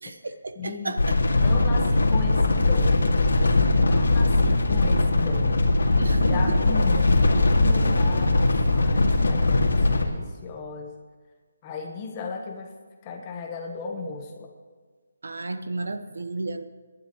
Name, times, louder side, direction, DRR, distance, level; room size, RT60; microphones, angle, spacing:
voice 1, 0.0-1.2 6.0-6.6 15.2-16.7, right 3 dB, 80° right, 9 dB, 1.1 m, -32 dB
voice 2, 0.5-1.0 1.4-5.6 6.2-10.9 11.6-12.7 13.0-14.5 16.2-16.3, left 5 dB, 20° left, 2 dB, 1.2 m, -35 dB
sound 1, 1.0-10.0, left 2 dB, 85° left, 2.2 m, -20 dB
28.0 x 11.5 x 3.1 m, 1.5 s
hypercardioid pair, 170°, 0 cm